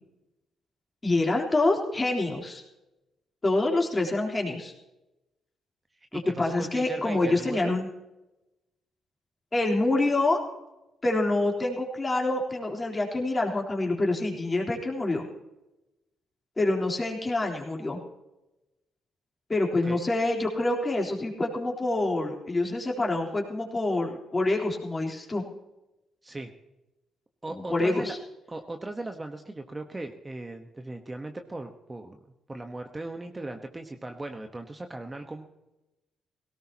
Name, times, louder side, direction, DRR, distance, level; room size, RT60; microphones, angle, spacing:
voice 1, 1.0-2.6 3.4-4.7 6.1-7.9 9.5-10.4 11.0-15.2 16.6-18.0 19.5-25.4 27.5-28.2, left 2 dB, 25° left, 0 dB, 3.6 m, -26 dB
voice 2, 6.1-7.7 19.8-20.0 26.2-26.5 27.4-28.1 28.5-32.2 32.5-35.5, right 2 dB, 20° right, 5 dB, 1.2 m, -38 dB
18.5 x 17.5 x 2.9 m, 0.97 s
cardioid pair, 90°, 0 cm